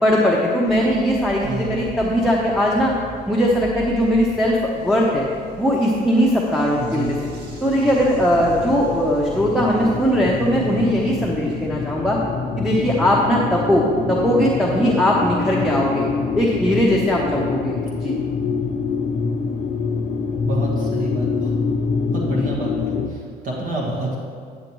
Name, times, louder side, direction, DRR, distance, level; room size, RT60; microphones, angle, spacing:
voice 1, 0.0-2.9 3.3-5.3 5.6-7.1 7.6-12.2 12.6-16.0 16.4-18.2, equal, ahead, -5 dB, 0.9 m, -19 dB
sound 1, 0.7-11.7, right 1 dB, 75° right, 1.5 m, -39 dB
voice 2, 1.4-1.8 6.8-7.1 20.4-21.5 22.1-24.2, right 1 dB, 55° right, -3 dB, 1.4 m, -28 dB
sound 2, 7.2-23.1, left 5 dB, 50° left, 0.6 m, -26 dB
10.0 x 7.0 x 3.1 m, 2.2 s
cardioid pair, 110°, 17 cm